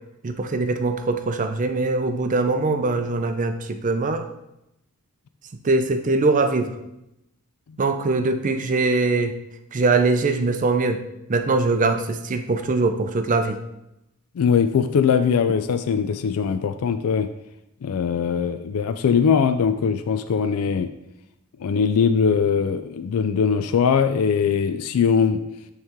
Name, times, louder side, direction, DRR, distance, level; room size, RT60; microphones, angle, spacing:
voice 1, 0.2-4.3 5.6-6.8 7.8-9.3 9.7-11.0 11.3-13.6, right 3 dB, 35° right, 8 dB, 0.5 m, -22 dB
voice 2, 14.4-17.3 17.8-20.9 21.6-25.4, left 6 dB, 75° left, 10 dB, 0.4 m, -21 dB
9.1 x 3.2 x 3.6 m, 0.87 s
head